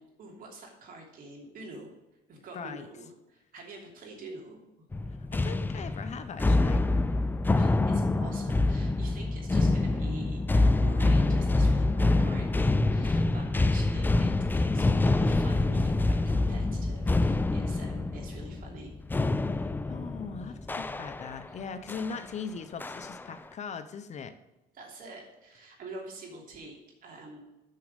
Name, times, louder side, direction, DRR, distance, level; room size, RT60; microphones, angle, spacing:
voice 1, 0.0-1.9 2.3-4.6 7.5-19.0 24.7-27.4, right 2 dB, 55° right, 0 dB, 2.9 m, -47 dB
voice 2, 2.5-2.9 5.3-6.9 19.5-24.3, left 5 dB, 45° left, 10 dB, 0.7 m, -40 dB
sound 1, 4.9-21.5 21.9-22.2 22.8-23.3, left 2 dB, 10° left, 0.4 m, -26 dB
6.6 x 6.3 x 6.6 m, 1.0 s
cardioid pair, 110°, 17 cm